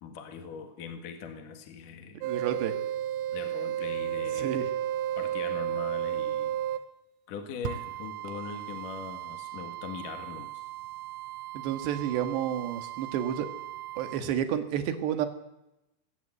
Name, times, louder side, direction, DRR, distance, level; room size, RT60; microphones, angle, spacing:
voice 1, 0.0-2.2 3.3-4.7 5.2-6.6 7.3-10.6, left 6 dB, 55° left, 6 dB, 2.8 m, -41 dB
voice 2, 2.2-2.8 4.4-4.6 11.6-13.5 14.0-15.3, right 10 dB, 65° right, 8 dB, 3.5 m, -30 dB
sound 1, 2.2-6.9 7.6-14.2, right 11 dB, 90° right, 3.6 m, -34 dB
21.0 x 17.0 x 8.1 m, 0.90 s
omnidirectional pair, 5.6 m